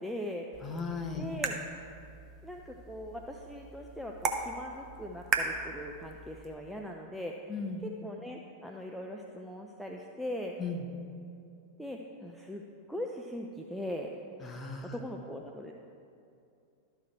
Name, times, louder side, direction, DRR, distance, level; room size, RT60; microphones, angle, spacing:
voice 1, 0.0-0.5 1.1-1.6 2.4-7.5 7.8-10.5 11.8-12.6 12.9-14.1 14.9-15.7, equal, ahead, 1 dB, 0.5 m, -40 dB
sound 1, 0.5-6.5, right 4 dB, 30° right, 0.8 m, -38 dB
voice 2, 0.6-1.3 7.5-7.8 10.6-10.8 14.4-14.9, left 4 dB, 20° left, 2 dB, 0.9 m, -36 dB
12.5 x 4.7 x 4.5 m, 2.5 s
figure-of-eight pair, 90°, 0 cm